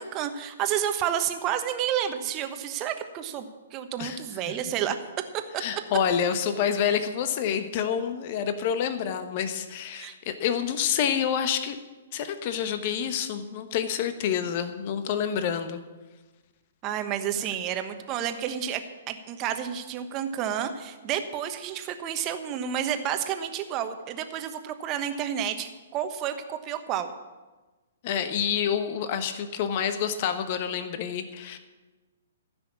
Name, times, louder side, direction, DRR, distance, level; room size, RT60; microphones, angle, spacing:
voice 1, 0.0-5.0 9.9-10.1 16.8-18.8 19.1-27.1, right 9 dB, 30° right, 8 dB, 1.2 m, -30 dB
voice 2, 5.6-11.8 12.1-15.8 28.0-31.6, left 8 dB, 40° left, 9 dB, 1.1 m, -28 dB
14.5 x 6.3 x 8.5 m, 1.2 s
figure-of-eight pair, 120°, 0 cm